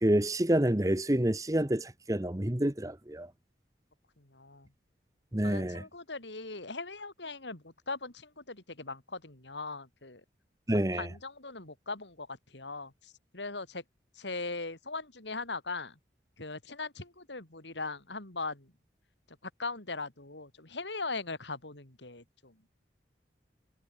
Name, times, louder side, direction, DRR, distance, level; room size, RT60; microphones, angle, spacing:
voice 1, 0.0-3.3 5.3-5.8 10.7-11.1, right 1 dB, 20° right, 1.1 m, -28 dB
voice 2, 4.2-4.7 5.4-10.2 10.7-13.8 14.2-15.9 16.4-18.7 19.4-22.5, left 3 dB, 85° left, 3.9 m, -40 dB
head